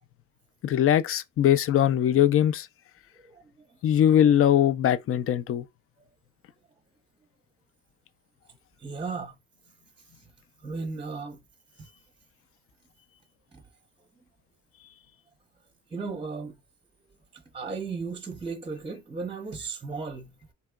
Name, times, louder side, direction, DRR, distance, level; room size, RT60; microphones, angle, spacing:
voice 1, 0.6-2.7 3.8-5.6, left 10 dB, 50° left, 0.4 m, -21 dB
voice 2, 8.8-9.3 10.6-11.4 15.9-16.6 17.5-20.3, right 4 dB, 15° right, 0.6 m, -35 dB
3.4 x 2.8 x 2.3 m
cardioid pair, 90°, 30 cm